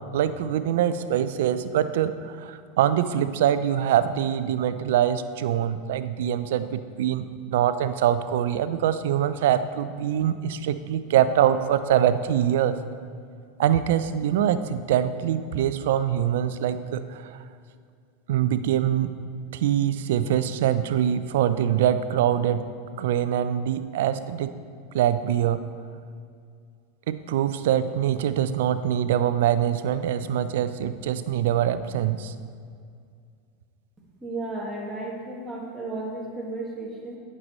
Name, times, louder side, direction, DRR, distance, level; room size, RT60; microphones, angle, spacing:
voice 1, 0.1-12.7 13.6-17.4 18.3-19.1 19.5-22.6 23.0-24.5 24.9-25.6 27.1-32.3, right 10 dB, 75° right, 12 dB, 0.4 m, -24 dB
voice 2, 34.2-37.2, right 2 dB, 10° right, -4 dB, 1.7 m, -33 dB
9.4 x 6.6 x 3.1 m, 2.2 s
hypercardioid pair, 100°, 0 cm